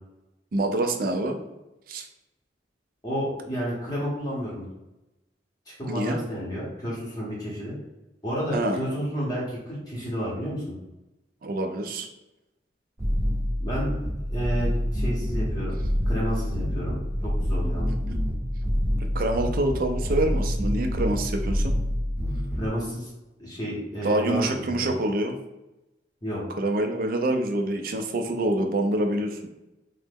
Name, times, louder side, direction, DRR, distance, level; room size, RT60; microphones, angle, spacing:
voice 1, 0.5-1.4 1.9-2.1 5.8-6.2 8.5-8.8 11.4-12.1 18.1-18.2 19.0-21.7 24.0-25.3 26.6-29.4, right 1 dB, 50° right, 5 dB, 0.4 m, -26 dB
voice 2, 3.0-4.7 5.7-7.7 8.2-10.7 13.6-13.9 14.3-15.7 16.1-17.9 22.6-23.1 23.4-24.9 26.2-26.4, equal, 20° left, -6 dB, 0.7 m, -31 dB
sound 1, 13.0-22.7, equal, 15° right, 0.7 m, -27 dB
3.1 x 2.0 x 3.4 m, 0.97 s
head